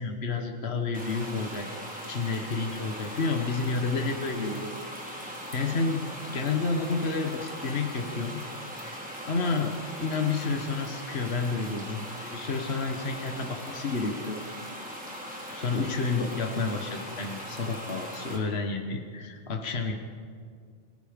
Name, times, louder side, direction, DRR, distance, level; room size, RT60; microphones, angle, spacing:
voice 1, 0.0-1.7 2.1-4.7 5.0-6.1 6.3-8.4 8.7-9.0 9.2-14.4 15.5-19.9, left 4 dB, 55° left, 4 dB, 1.7 m, -30 dB
sound 1, 0.9-18.4, equal, 5° right, 4.2 m, -40 dB
30.0 x 22.5 x 5.3 m, 2.1 s
omnidirectional pair, 1.3 m